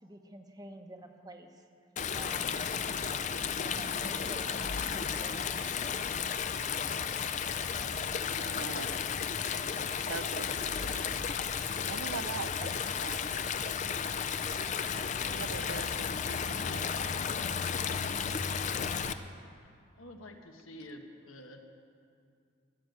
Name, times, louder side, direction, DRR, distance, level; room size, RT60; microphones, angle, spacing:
voice 1, 0.0-1.5 2.1-2.6 3.6-5.4, right 1 dB, 20° right, 5 dB, 0.8 m, -48 dB
Stream, 2.0-19.1, left 6 dB, 35° left, 0.4 m, -33 dB
voice 2, 8.4-9.0 10.1-11.1 11.9-13.5 15.2-16.9, right 5 dB, 85° right, 12 dB, 0.6 m, -42 dB
voice 3, 19.6-21.6, left 1 dB, 90° left, 4 dB, 1.3 m, -49 dB
15.0 x 7.0 x 9.5 m, 2.4 s
head